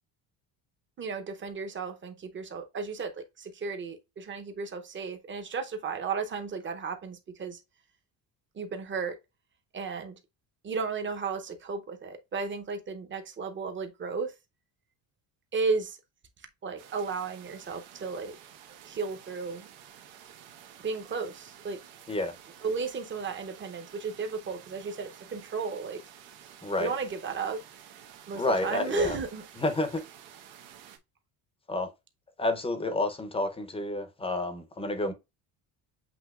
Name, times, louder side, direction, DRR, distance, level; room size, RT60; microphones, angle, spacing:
voice 1, 1.0-7.6 8.6-9.2 9.7-10.1 10.6-14.3 15.5-16.0 16.6-18.3 18.8-19.7 20.8-21.8 22.6-26.0 26.8-27.6 28.3-29.4, right 4 dB, 25° right, 0.7 m, -34 dB
sound 1, 16.8-31.0, right 9 dB, 80° right, 1.1 m, -51 dB
voice 2, 26.6-26.9 28.3-29.2 29.5-30.0 31.7-31.9 32.4-35.1, left 2 dB, 10° left, 0.6 m, -29 dB
7.9 x 2.8 x 2.3 m
cardioid pair, 140°, 46 cm